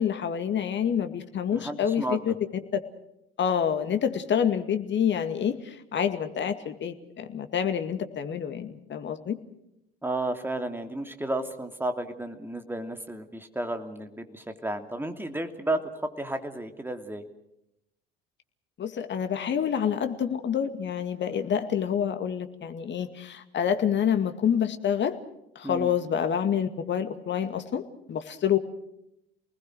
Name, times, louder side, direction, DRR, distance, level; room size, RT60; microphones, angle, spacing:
voice 1, 0.0-2.3 3.4-9.4 18.8-25.2 25.6-28.6, left 8 dB, 40° left, 8 dB, 2.2 m, -27 dB
voice 2, 1.5-2.4 10.0-17.2 25.6-26.0, right 1 dB, 5° right, 6 dB, 2.8 m, -32 dB
29.0 x 20.0 x 6.3 m, 0.82 s
figure-of-eight pair, 65°, 30 cm